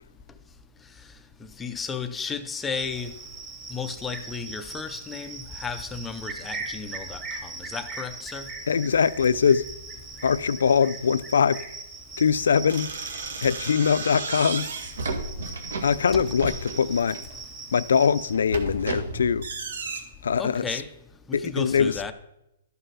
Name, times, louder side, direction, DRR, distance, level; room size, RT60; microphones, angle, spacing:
voice 1, 1.6-3.1 3.7-8.5 16.1-16.2 20.4-20.9 21.3-22.1, left 5 dB, 5° left, 0.4 m, -33 dB
Cricket, 2.7-18.3, right 3 dB, 15° right, 1.2 m, -40 dB
voice 2, 8.7-9.7 10.2-11.6 12.2-12.9 13.4-14.7 15.8-17.2 17.7-19.5 20.2-20.6 21.3-22.1, left 6 dB, 85° left, 0.4 m, -22 dB
sound 1, 12.7-17.3 17.8-20.0, right 3 dB, 80° right, 1.7 m, -33 dB
12.5 x 5.7 x 5.5 m
hypercardioid pair, 180°, 0 cm